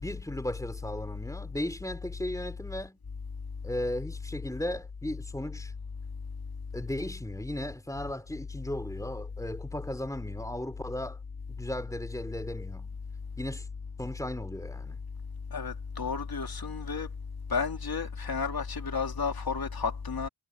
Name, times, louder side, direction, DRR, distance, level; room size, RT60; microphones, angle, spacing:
voice 1, 0.0-3.0 3.6-5.7 6.7-11.2 11.5-12.9 13.4-13.7 14.0-15.0, left 1 dB, 10° left, 3.6 m, -36 dB
voice 2, 15.5-17.1 17.5-20.3, left 5 dB, 60° left, 2.8 m, -32 dB
cardioid pair, 55°, 40 cm